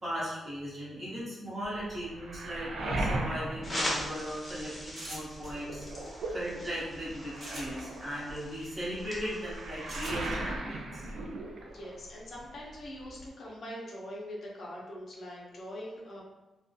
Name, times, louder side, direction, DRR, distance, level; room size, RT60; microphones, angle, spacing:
voice 1, 0.0-5.8 6.3-11.1, equal, 25° right, -7 dB, 0.8 m, -38 dB
Waves surf, 1.6-4.8 5.2-12.1 12.3-13.3, right 2 dB, 90° right, 0.4 m, -38 dB
sound 1, 3.6-10.4, left 1 dB, 15° left, 0.7 m, -41 dB
sound 2, 4.9-5.5 7.4-7.8 9.9-10.3, right 1 dB, 60° right, 1.1 m, -42 dB
voice 2, 11.6-16.2, equal, 50° left, -4 dB, 0.5 m, -43 dB
2.3 x 2.1 x 2.6 m, 1.1 s
wide cardioid pair, 155°, 0 cm